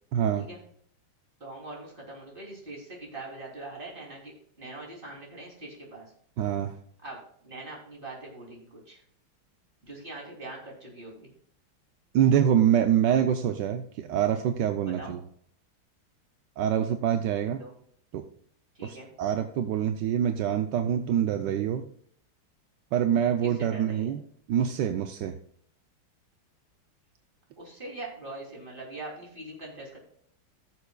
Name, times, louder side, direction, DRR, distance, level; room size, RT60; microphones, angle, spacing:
voice 1, 0.1-0.5 6.4-6.8 12.1-15.2 16.6-17.6 18.1-18.3 18.8-21.9 22.9-24.2 24.5-25.4, right 9 dB, 75° right, 7 dB, 1.1 m, -25 dB
voice 2, 1.4-6.1 7.0-7.2 7.4-9.0 9.8-11.3 14.8-15.1 17.4-17.7 18.7-19.1 23.4-24.1 27.6-30.0, right 2 dB, 25° right, -3 dB, 3.3 m, -42 dB
18.0 x 6.9 x 2.3 m, 0.63 s
omnidirectional pair, 2.4 m